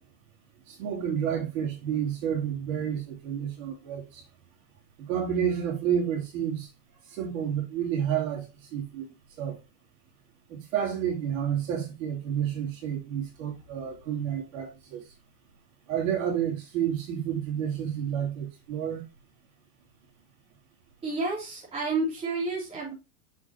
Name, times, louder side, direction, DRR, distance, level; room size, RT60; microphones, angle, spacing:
voice 1, 0.7-4.2 5.1-6.7 7.1-9.0 9.4-9.6 10.5-15.1 15.9-19.0, right 9 dB, 60° right, 3.2 m, -30 dB
voice 2, 21.0-22.9, right 3 dB, 15° right, 3.3 m, -30 dB
6.9 x 6.8 x 2.9 m
supercardioid pair, 170°, 45 cm